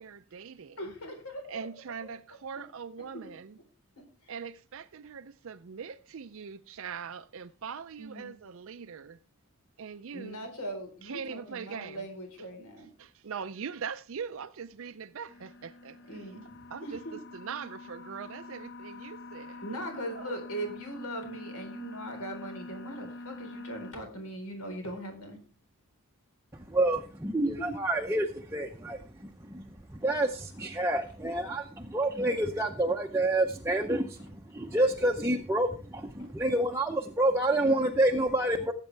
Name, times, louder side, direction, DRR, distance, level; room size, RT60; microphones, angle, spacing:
voice 1, 0.0-0.9 1.5-3.6 4.3-9.2 9.8-10.5 11.0-12.0 13.0-16.0 16.7-17.0 17.3-19.6 19.9-20.4, right 6 dB, 60° right, 0.5 m, -41 dB
voice 2, 0.8-1.7 3.0-3.1 4.2-4.3 8.0-8.4 10.1-12.9 16.1-17.2 19.6-25.4 27.5-27.7 36.2-36.3, right 1 dB, 85° left, 4.1 m, -40 dB
sound 1, 15.3-23.9, left 2 dB, 55° left, 1.1 m, -45 dB
voice 3, 26.7-29.6 29.9-38.7, right 1 dB, 10° right, 0.7 m, -28 dB
18.0 x 8.3 x 3.3 m
head